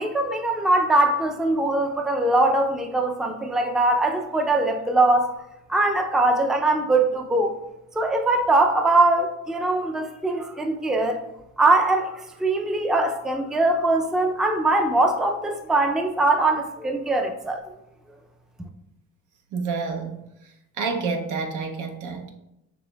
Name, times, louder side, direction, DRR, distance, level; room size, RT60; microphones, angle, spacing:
voice 1, 0.0-5.4 5.7-7.6 8.0-11.2 11.6-17.6, right 2 dB, ahead, 5 dB, 0.3 m, -22 dB
voice 2, 19.5-20.2 20.8-22.3, right 4 dB, 80° right, 3 dB, 0.7 m, -28 dB
6.1 x 3.0 x 2.2 m, 0.88 s
cardioid pair, 90°, 30 cm